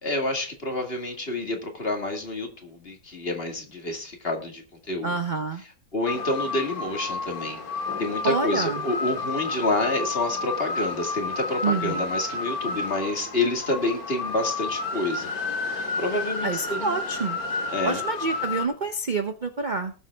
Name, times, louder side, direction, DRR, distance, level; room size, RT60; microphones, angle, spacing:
voice 1, 0.0-5.2 5.9-7.6 8.0-15.3 15.7-17.0 17.7-18.0, left 2 dB, 35° left, 4 dB, 2.3 m, -28 dB
voice 2, 5.0-5.6 8.2-8.8 11.6-12.1 16.4-17.4 17.8-19.9, right 4 dB, 35° right, 7 dB, 0.8 m, -27 dB
sound 1, 6.1-18.7, left 3 dB, 60° left, 2.3 m, -31 dB
19.0 x 7.4 x 3.5 m, 0.34 s
omnidirectional pair, 1.8 m